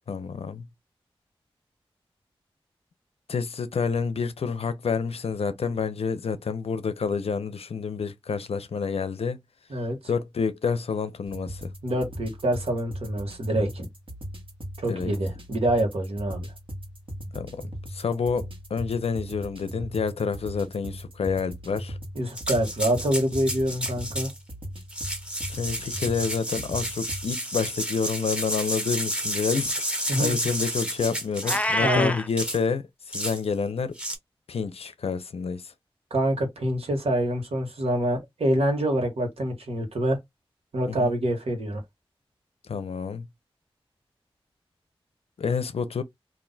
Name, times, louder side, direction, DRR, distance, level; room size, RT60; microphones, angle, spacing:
voice 1, 0.1-0.7 3.3-9.4 10.1-11.7 14.9-15.1 17.3-17.6 17.9-22.0 25.5-34.0 34.5-35.7 40.9-41.1 42.6-43.3 45.4-46.0, left 5 dB, 80° left, 0.5 m, -29 dB
sound 1, 11.3-27.3, equal, 60° right, 1.2 m, -39 dB
voice 2, 11.8-13.9 14.8-16.5 22.1-24.3 30.1-30.4 31.8-32.2 36.1-40.2 40.7-41.8, right 1 dB, 85° right, 1.2 m, -26 dB
sound 2, 22.3-24.4 24.8-31.8 32.4-32.6 33.1-33.4 34.0-34.2, equal, 10° right, 1.0 m, -31 dB
Meow, 31.4-32.3, left 1 dB, 15° left, 0.4 m, -26 dB
2.5 x 2.1 x 3.8 m
cardioid pair, 45°, 10 cm